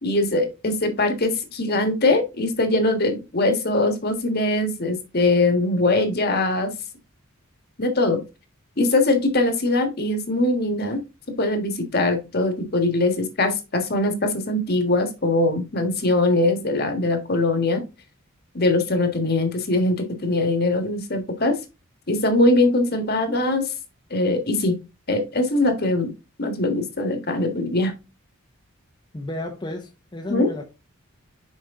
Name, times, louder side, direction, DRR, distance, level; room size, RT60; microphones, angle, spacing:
voice 1, 0.0-6.7 7.8-8.2 8.8-11.0 11.4-17.8 18.5-20.0 20.2-21.6 22.1-23.7 24.1-24.7 25.1-26.1 26.4-27.9 30.3-30.5, left 2 dB, 45° left, 1.5 m, -22 dB
voice 2, 29.1-30.6, left 1 dB, 20° left, 0.8 m, -32 dB
6.6 x 4.9 x 3.6 m
head